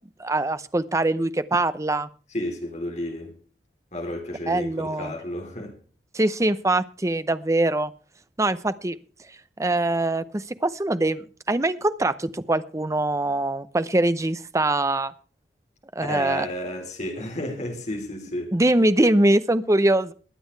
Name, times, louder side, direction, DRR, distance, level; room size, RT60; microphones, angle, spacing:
voice 1, 0.2-2.1 4.5-5.1 6.1-7.9 8.4-9.0 9.6-15.1 15.9-16.5 18.5-20.1, right 2 dB, 20° right, 0.7 m, -23 dB
voice 2, 2.3-3.3 3.9-5.8 16.0-18.5, left 1 dB, 40° left, 3.7 m, -32 dB
22.0 x 8.6 x 3.3 m
head